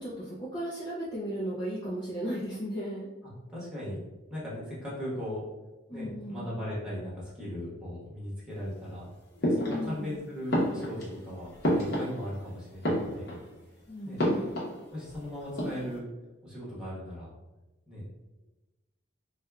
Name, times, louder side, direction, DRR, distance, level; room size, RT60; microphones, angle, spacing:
voice 1, 0.0-3.1 5.9-6.5 9.6-10.1 13.9-14.5, equal, 25° left, -5 dB, 0.3 m, -35 dB
voice 2, 3.5-5.5 5.9-13.4 14.0-14.2 14.9-16.0 16.4-17.3 17.9-18.0, equal, 5° right, -8 dB, 1.1 m, -38 dB
sound 1, 9.4-10.1 10.5-12.5 12.7-13.6 14.2-15.2 15.4-16.0, equal, 55° left, 0.9 m, -30 dB
4.4 x 2.2 x 2.3 m, 1.1 s
head